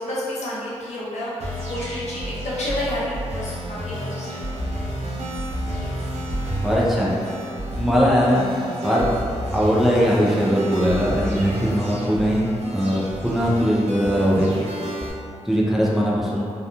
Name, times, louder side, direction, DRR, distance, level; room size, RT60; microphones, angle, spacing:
voice 1, 0.0-4.6, left 1 dB, 75° left, -8 dB, 0.8 m, -30 dB
sound 1, 1.4-15.1, right 1 dB, 65° right, 0.6 m, -30 dB
voice 2, 6.6-7.1 7.8-8.4 8.8-9.1 9.5-12.5 12.7-14.5 15.5-16.5, equal, ahead, -6 dB, 0.4 m, -20 dB
2.8 x 2.2 x 2.4 m, 2.4 s
wide cardioid pair, 115°, 12 cm